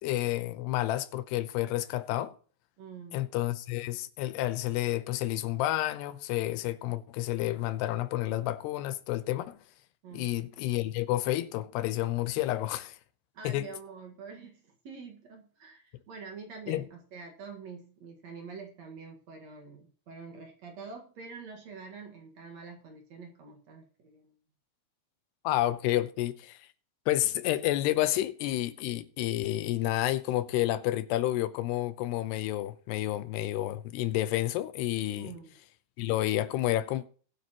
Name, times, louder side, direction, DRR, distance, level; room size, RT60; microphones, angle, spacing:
voice 1, 0.0-2.4 3.1-9.6 10.1-13.0 13.4-13.7 16.7-16.8 25.4-26.6 27.1-35.3 36.0-37.1, left 15 dB, 85° left, 2.9 m, -30 dB
voice 2, 2.8-3.2 10.0-10.3 13.3-24.3 35.2-35.6, right 5 dB, 55° right, 2.4 m, -46 dB
22.0 x 8.0 x 3.0 m
omnidirectional pair, 4.7 m